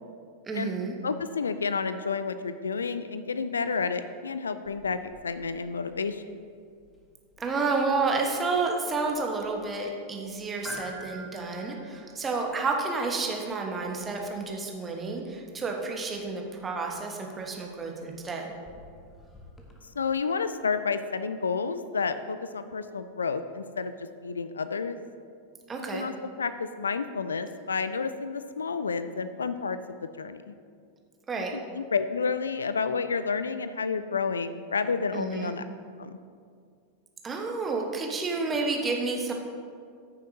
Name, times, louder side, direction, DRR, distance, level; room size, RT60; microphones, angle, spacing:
voice 1, 0.5-0.9 7.4-18.5 25.7-26.0 31.3-31.5 35.1-35.5 37.2-39.3, right 4 dB, 20° right, 1 dB, 1.3 m, -30 dB
voice 2, 1.0-6.2 20.0-25.0 25.9-30.5 31.5-35.6 36.0-36.1, left 5 dB, 70° left, 12 dB, 0.3 m, -30 dB
sound 1, 4.7-19.8, equal, 15° left, 1.3 m, -51 dB
14.5 x 6.7 x 2.8 m, 2.3 s
figure-of-eight pair, 90°, 0 cm